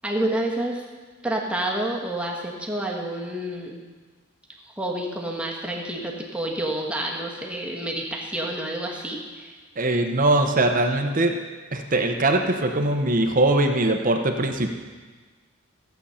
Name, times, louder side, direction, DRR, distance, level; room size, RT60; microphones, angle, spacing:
voice 1, 0.0-0.8 1.2-3.8 4.8-9.5, right 1 dB, 5° right, -2 dB, 1.4 m, -29 dB
voice 2, 9.8-11.4 11.7-14.7, right 2 dB, 40° right, 4 dB, 0.9 m, -21 dB
15.0 x 8.1 x 5.7 m, 1.4 s
head